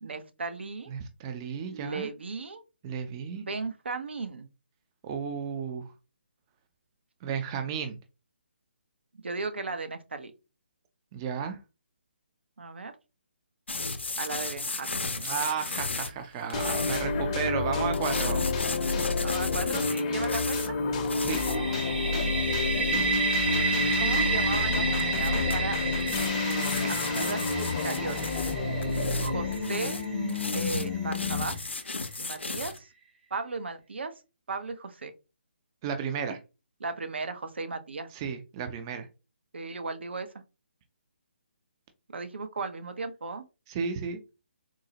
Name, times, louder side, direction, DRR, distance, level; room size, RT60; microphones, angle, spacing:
voice 1, 0.0-0.9 1.7-2.6 3.4-4.5 9.2-10.3 12.6-12.9 14.2-15.5 19.2-20.8 24.0-28.3 29.2-30.0 30.3-31.6 32.2-32.9 33.3-34.1 34.5-35.1 36.8-38.1 39.5-40.3 42.1-43.5, right 3 dB, 70° right, 8 dB, 0.6 m, -36 dB
voice 2, 0.9-2.1 2.8-3.4 5.0-5.9 7.2-8.0 11.1-11.6 15.2-18.5 21.2-21.4 35.8-36.4 38.1-39.1 43.7-44.2, right 6 dB, 25° right, 7 dB, 0.4 m, -33 dB
sound 1, 13.7-17.0 17.9-20.7 21.0-21.6 23.9-24.0 25.0-25.6 26.0-28.5 28.8-32.8, left 3 dB, 85° left, 0.5 m, -35 dB
sound 2, 16.5-31.6, left 3 dB, 35° left, 0.6 m, -29 dB
sound 3, 21.4-31.1, right 4 dB, 55° right, 1.1 m, -31 dB
3.8 x 2.0 x 2.8 m, 0.29 s
figure-of-eight pair, 145°, 6 cm